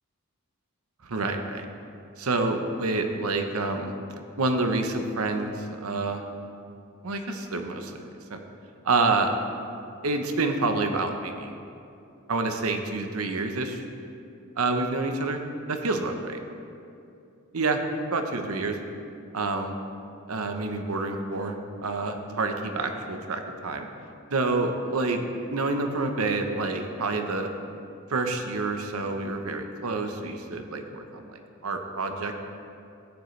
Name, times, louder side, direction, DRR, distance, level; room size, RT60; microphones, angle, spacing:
voice 1, 1.0-1.7 2.2-3.9 4.4-6.2 7.0-8.4 8.8-9.3 10.0-11.5 12.3-13.8 14.6-15.4 15.7-16.4 17.5-17.8 18.1-18.8 19.3-19.7 20.3-23.9 24.3-25.2 25.5-27.5 28.1-32.4, right 3 dB, 85° right, 5 dB, 0.9 m, -28 dB
14.0 x 9.4 x 3.2 m, 2.6 s
head